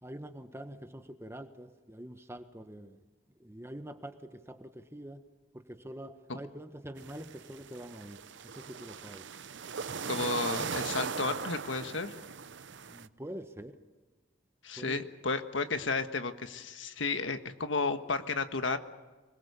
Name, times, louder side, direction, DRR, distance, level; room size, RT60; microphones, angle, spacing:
voice 1, 0.0-3.0 3.4-5.2 5.5-8.2 8.4-9.3 12.9-13.8 14.7-15.0, right 1 dB, 15° right, 1.3 m, -45 dB
sound 1, 7.0-13.1, right 6 dB, 70° right, 0.7 m, -39 dB
voice 2, 10.0-12.1 14.6-18.8, left 4 dB, 80° left, 1.5 m, -33 dB
25.0 x 21.0 x 7.0 m
head